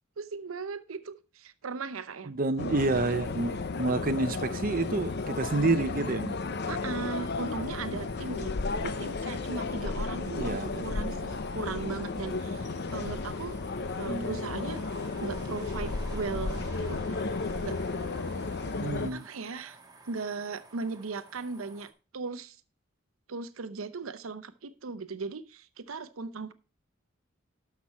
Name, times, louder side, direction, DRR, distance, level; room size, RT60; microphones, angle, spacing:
voice 1, 0.2-2.3 6.7-8.5 8.8-13.6 13.9-14.8 15.2-17.0 17.6-17.8 19.1-19.8 20.0-22.6 23.3-26.5, right 4 dB, 90° right, 0.7 m, -38 dB
voice 2, 2.3-6.4 10.3-11.1 14.1-14.4 18.8-19.3, right 2 dB, 45° right, 0.7 m, -29 dB
sound 1, 2.6-19.1, left 3 dB, 55° left, 0.7 m, -33 dB
sound 2, 3.0-21.9, right 3 dB, 20° right, 1.4 m, -53 dB
12.5 x 6.0 x 4.2 m
head